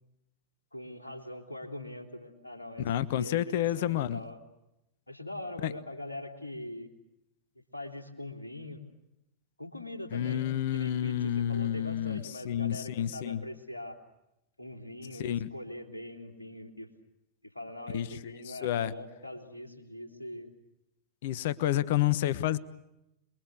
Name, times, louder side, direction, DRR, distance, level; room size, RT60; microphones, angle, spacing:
voice 1, 0.7-4.4 5.1-6.9 7.7-8.8 9.6-10.5 10.7-14.0 14.6-16.9 17.4-20.5, left 1 dB, 85° left, 5 dB, 3.3 m, -42 dB
voice 2, 2.8-4.2 5.6-5.7 10.1-13.4 15.2-15.5 17.9-18.9 21.2-22.6, left 11 dB, 55° left, 18 dB, 1.1 m, -30 dB
28.0 x 22.5 x 7.9 m, 0.87 s
figure-of-eight pair, 90°, 0 cm